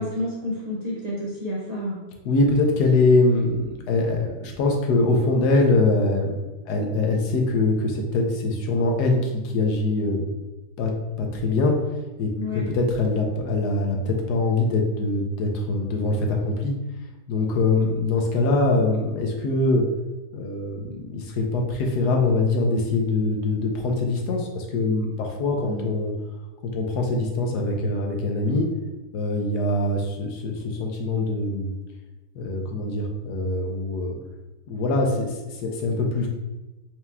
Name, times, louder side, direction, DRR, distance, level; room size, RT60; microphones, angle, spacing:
voice 1, 0.0-2.0 12.4-12.7 25.6-25.9, left 1 dB, 45° right, -6 dB, 0.5 m, -30 dB
voice 2, 2.2-10.3 10.8-10.9 11.2-11.8 12.2-12.3 12.7-16.8 17.3-19.8 20.3-26.1 26.7-28.7 29.1-31.7 32.3-34.2 34.7-36.3, left 2 dB, 85° left, 2 dB, 1.3 m, -23 dB
4.5 x 2.9 x 3.4 m, 1.1 s
omnidirectional pair, 1.7 m